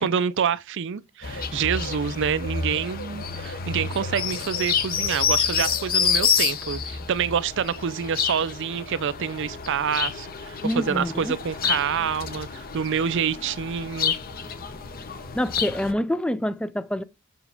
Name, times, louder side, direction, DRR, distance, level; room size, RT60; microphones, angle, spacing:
voice 1, 0.0-14.1, right 7 dB, 60° right, 0.5 m, -27 dB
sound 1, 1.2-15.9, left 6 dB, 45° left, 0.8 m, -28 dB
voice 2, 10.6-11.4 15.3-17.0, equal, 5° left, 0.4 m, -26 dB
7.1 x 5.4 x 3.4 m
head